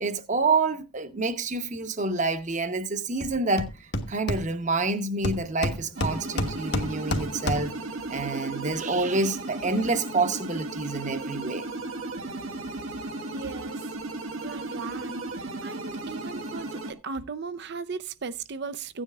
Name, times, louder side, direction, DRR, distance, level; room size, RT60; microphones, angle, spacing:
voice 1, 0.0-7.7 8.1-11.7, right 3 dB, 35° right, 0.9 m, -28 dB
Hammer, 3.2-3.3 3.6-4.9 5.2-7.9, left 1 dB, 55° left, 1.2 m, -30 dB
sound 1, 6.0-16.9, right 2 dB, 90° right, 1.7 m, -35 dB
voice 2, 13.3-13.9 14.4-15.3 15.6-19.0, right 4 dB, 55° right, 0.5 m, -37 dB
16.0 x 9.8 x 2.4 m
head